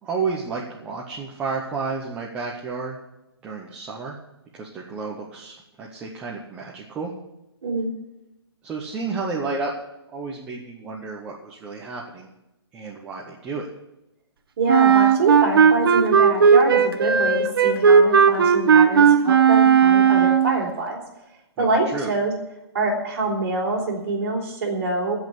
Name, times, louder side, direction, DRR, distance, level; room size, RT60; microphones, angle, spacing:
voice 1, 0.0-3.0 3.4-4.2 4.5-7.1 8.6-9.7 10.1-12.3 12.7-13.7 21.6-21.7 21.9-22.1, right 4 dB, 10° right, -3 dB, 0.8 m, -31 dB
voice 2, 7.6-7.9 14.6-21.0 21.6-22.3 22.7-25.2, right 2 dB, 35° right, -2 dB, 4.1 m, -25 dB
Wind instrument woodwind instrument, 14.7-20.6, right 6 dB, 60° right, 1.1 m, -15 dB
15.0 x 5.4 x 9.6 m, 0.91 s
hypercardioid pair, 175°, 14 cm